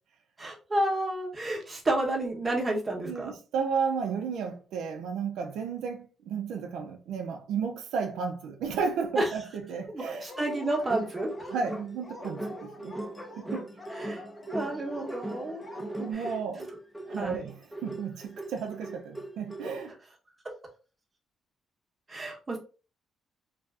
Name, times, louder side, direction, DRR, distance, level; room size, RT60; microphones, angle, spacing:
voice 1, 0.4-3.3 9.2-9.3 9.9-11.3 14.0-15.6 16.1-16.2 17.2-17.4 20.4-20.5 22.1-22.6, right 1 dB, 25° right, 0.8 m, -30 dB
voice 2, 3.0-10.3 11.5-13.0 13.4-13.7 15.8-16.7 17.1-19.9, right 6 dB, 80° right, 0.3 m, -33 dB
sound 1, 10.1-19.9, right 1 dB, ahead, 0.4 m, -40 dB
Dog, 10.3-16.1, left 1 dB, 25° left, 1.1 m, -45 dB
2.5 x 2.3 x 2.3 m
cardioid pair, 90°, 0 cm